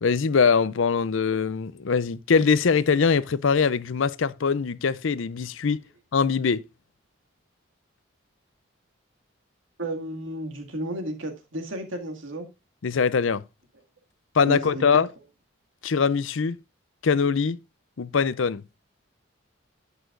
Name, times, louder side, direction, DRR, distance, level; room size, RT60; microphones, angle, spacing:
voice 1, 0.0-5.8 6.1-6.6 12.8-13.4 14.3-15.1 15.8-16.6 17.0-17.6 18.0-18.6, left 5 dB, 75° left, 0.5 m, -22 dB
voice 2, 9.8-12.5 14.5-14.8, right 1 dB, 80° right, 2.1 m, -32 dB
11.0 x 8.3 x 2.5 m
head